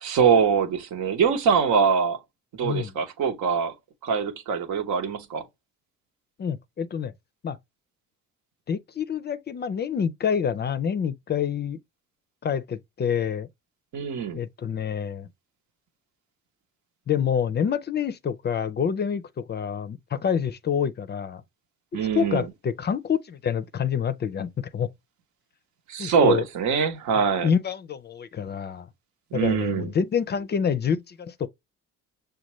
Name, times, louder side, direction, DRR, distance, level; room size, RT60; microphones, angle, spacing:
voice 1, 0.0-2.2 2.5-3.7 4.0-5.4 13.9-14.4 21.9-22.4 25.9-27.5 29.3-29.9, right 6 dB, 75° right, 0.9 m, -23 dB
voice 2, 2.6-2.9 6.4-7.1 7.4-7.6 8.7-11.8 12.4-13.5 14.3-15.3 17.1-21.4 21.9-24.9 26.0-26.5 27.4-28.9 29.3-31.5, left 7 dB, 35° left, 0.4 m, -27 dB
6.3 x 2.2 x 3.0 m
cardioid pair, 100°, 30 cm